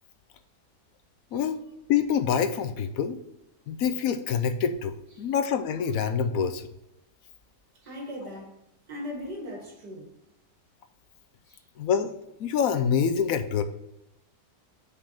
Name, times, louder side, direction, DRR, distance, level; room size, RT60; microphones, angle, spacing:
voice 1, 1.9-3.2 3.7-6.7 11.8-12.1 12.4-13.6, left 7 dB, 70° left, 1.0 m, -26 dB
voice 2, 7.8-8.6 8.9-10.1 11.5-11.6, left 1 dB, 85° right, 2.5 m, -39 dB
5.4 x 5.0 x 5.7 m
omnidirectional pair, 1.7 m